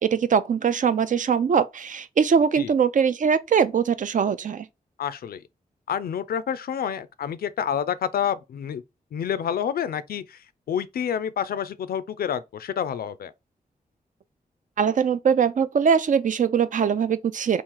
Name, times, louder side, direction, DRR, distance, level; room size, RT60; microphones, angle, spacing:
voice 1, 0.0-4.7 14.8-17.6, right 7 dB, 55° right, 0.4 m, -22 dB
voice 2, 5.0-5.4 5.9-8.8 9.1-13.3, left 8 dB, 75° left, 0.4 m, -28 dB
3.0 x 2.4 x 3.7 m
cardioid pair, 50°, 16 cm